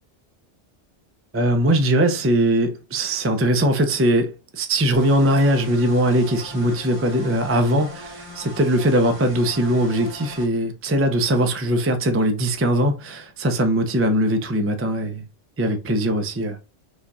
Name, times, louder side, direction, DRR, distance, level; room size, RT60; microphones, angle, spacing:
voice 1, 1.3-15.2 15.6-16.6, right 1 dB, 20° right, 0.4 m, -20 dB
sound 1, 4.9-10.5, equal, 75° right, 1.8 m, -39 dB
4.9 x 2.4 x 4.0 m
omnidirectional pair, 1.2 m